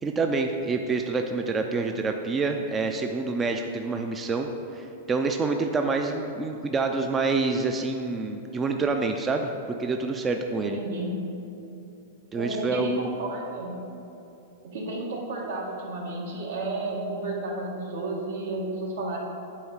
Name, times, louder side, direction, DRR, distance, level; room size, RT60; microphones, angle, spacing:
voice 1, 0.0-10.8 12.3-13.1, right 3 dB, 15° right, 4 dB, 0.4 m, -27 dB
voice 2, 10.6-11.1 12.3-13.9 14.6-19.2, right 2 dB, 75° right, -1 dB, 1.6 m, -32 dB
8.7 x 3.6 x 6.3 m, 2.8 s
hypercardioid pair, 150°, 0 cm